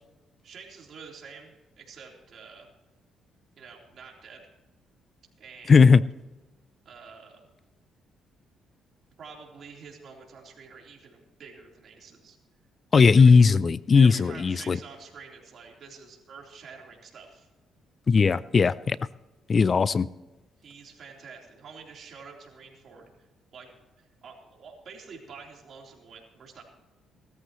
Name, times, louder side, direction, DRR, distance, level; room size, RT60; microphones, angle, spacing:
voice 1, 0.4-2.7 3.6-4.5 5.4-5.9 6.9-7.5 9.2-12.4 13.1-13.3 13.9-17.5 20.6-23.1 23.5-26.6, right 5 dB, 60° right, 0 dB, 3.6 m, -47 dB
voice 2, 5.7-6.0 12.9-14.8 18.1-19.0 19.5-20.1, left 5 dB, 40° left, 19 dB, 0.4 m, -18 dB
18.5 x 13.5 x 3.1 m, 1.1 s
cardioid pair, 90°, 0 cm